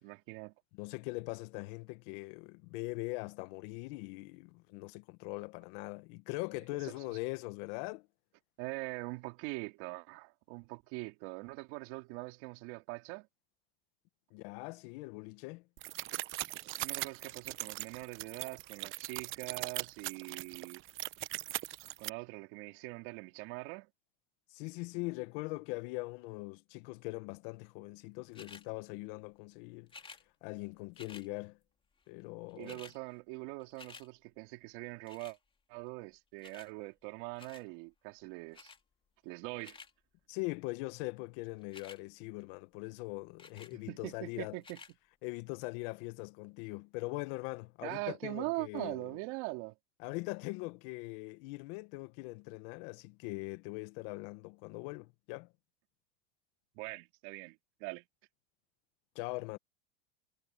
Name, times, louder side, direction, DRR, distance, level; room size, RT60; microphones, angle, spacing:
voice 1, 0.0-0.5 6.7-7.2 8.6-13.3 16.6-20.8 22.0-23.9 32.5-35.4 35.7-38.7 39.2-39.8 43.9-44.8 47.8-49.8 56.7-58.0, right 26 dB, 65° right, 3.8 m, -42 dB
voice 2, 0.7-8.1 14.3-15.6 24.5-29.9 30.4-31.6 32.1-32.8 40.3-44.6 45.2-49.2 50.0-55.5 59.1-59.6, left 24 dB, 65° left, 1.3 m, -41 dB
sound 1, 15.8-22.1, right 16 dB, 45° right, 1.0 m, -40 dB
sound 2, 28.3-28.7 29.9-30.2 30.9-31.3 32.2-32.3 32.5-33.0 33.3-34.1 35.1-35.4 36.4-36.7 37.4-37.7 38.5-38.8 39.4-39.9 41.6-42.0 43.4-43.7 44.6-44.9 45.6-45.7, left 4 dB, 15° left, 2.5 m, -52 dB
supercardioid pair, 120°, 30 cm